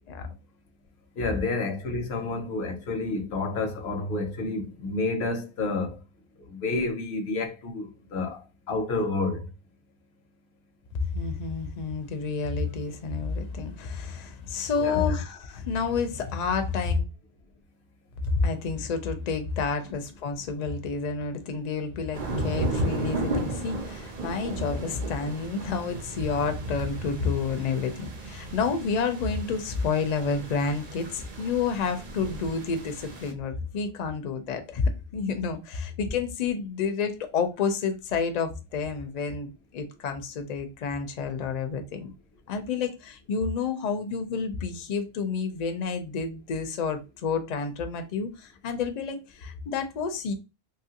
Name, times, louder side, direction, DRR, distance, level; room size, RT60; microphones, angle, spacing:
voice 1, 1.2-6.0 6.4-9.5 14.7-15.2, left 3 dB, 80° left, 0.9 m, -30 dB
voice 2, 11.1-17.1 18.2-34.8 35.1-42.1 42.5-50.3, left 5 dB, 50° left, 0.5 m, -29 dB
sound 1, 22.1-33.3, right 1 dB, 50° right, 0.6 m, -34 dB
2.9 x 2.4 x 2.8 m
omnidirectional pair, 1.1 m